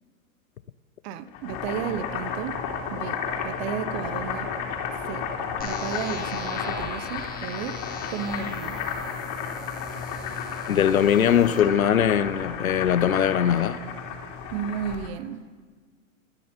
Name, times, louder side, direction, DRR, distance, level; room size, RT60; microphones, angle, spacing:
voice 1, 1.0-2.6 2.9-4.5 5.1-5.3 5.6-7.8 8.1-8.8 14.5-15.6, right 8 dB, 50° right, 1.1 m, -33 dB
Boiling, 1.3-15.1, left 6 dB, 45° left, 3.3 m, -32 dB
sound 1, 5.6-11.6, left 5 dB, 20° left, 2.2 m, -42 dB
voice 2, 10.7-13.8, left 9 dB, 90° left, 0.8 m, -21 dB
29.0 x 10.0 x 4.5 m
hypercardioid pair, 105°, 41 cm